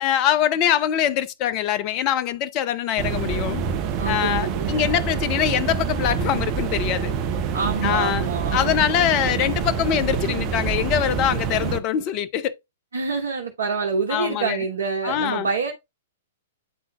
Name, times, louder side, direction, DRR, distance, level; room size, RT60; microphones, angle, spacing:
voice 1, 0.0-3.6 4.0-7.1 7.8-12.6 14.1-14.6 15.0-15.5, left 10 dB, 35° left, 0.7 m, -23 dB
sound 1, 3.0-11.8, right 6 dB, 35° right, 0.9 m, -26 dB
voice 2, 4.0-5.0 7.5-8.9 12.9-15.7, right 5 dB, 65° right, 1.3 m, -27 dB
9.9 x 3.9 x 2.4 m
figure-of-eight pair, 110°, 0 cm